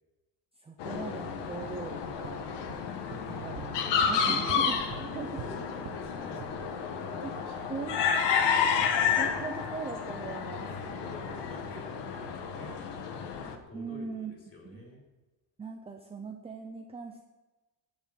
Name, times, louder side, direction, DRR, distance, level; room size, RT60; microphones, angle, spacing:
voice 1, 0.6-2.5 3.3-3.8 4.0-5.4 7.2-7.4 7.7-8.0 8.4-8.9 9.2-10.7 13.7-14.3 14.6-14.8 15.6-17.2, right 5 dB, 15° right, 2 dB, 0.7 m, -40 dB
sound 1, 0.8-13.6, left 6 dB, 60° left, 1.7 m, -31 dB
sound 2, 2.0-6.1 6.4-6.7, right 8 dB, 60° right, 1.2 m, -46 dB
voice 2, 4.1-4.7 5.3-9.4 10.6-12.7 13.7-15.0, left 1 dB, 30° left, 0 dB, 4.3 m, -47 dB
11.0 x 9.8 x 8.9 m, 1.1 s
cardioid pair, 180°, 47 cm